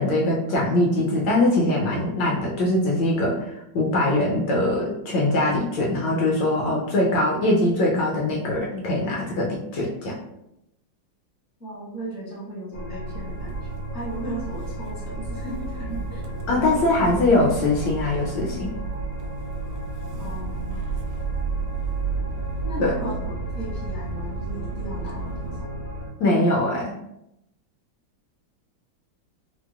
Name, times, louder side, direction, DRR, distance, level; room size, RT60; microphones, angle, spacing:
voice 1, 0.0-3.5 3.7-10.1 16.5-18.7 22.8-22.9 26.2-26.9, left 1 dB, 70° left, -3 dB, 1.2 m, -22 dB
voice 2, 11.6-16.3 20.2-20.9 22.6-25.7, right 1 dB, 15° right, -9 dB, 0.7 m, -36 dB
sound 1, 12.7-26.1, equal, 85° left, 2.0 m, -34 dB
Motor vehicle (road) / Engine starting, 13.1-25.6, right 5 dB, 75° right, 1.1 m, -33 dB
4.5 x 2.1 x 2.3 m, 0.84 s
omnidirectional pair, 2.3 m